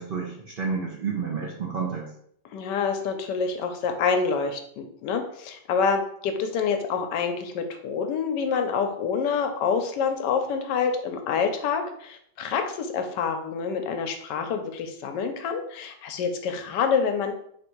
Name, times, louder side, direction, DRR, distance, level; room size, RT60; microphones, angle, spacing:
voice 1, 0.0-2.1, right 5 dB, 60° right, -3 dB, 0.5 m, -30 dB
voice 2, 2.5-17.3, left 6 dB, 80° left, 6 dB, 1.2 m, -27 dB
3.5 x 2.6 x 4.3 m, 0.67 s
omnidirectional pair, 1.9 m